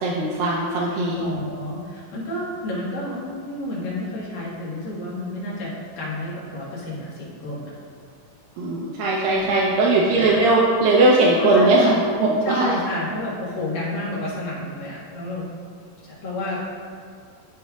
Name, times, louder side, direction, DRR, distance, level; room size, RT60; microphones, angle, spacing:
voice 1, 0.0-1.3 8.6-12.8, right 2 dB, 80° right, -5 dB, 2.4 m, -19 dB
voice 2, 1.1-7.7 9.3-9.5 11.4-12.0 12.4-15.5 16.0-16.7, left 1 dB, 75° left, -7 dB, 3.2 m, -30 dB
12.0 x 5.2 x 2.3 m, 2.1 s
omnidirectional pair, 4.1 m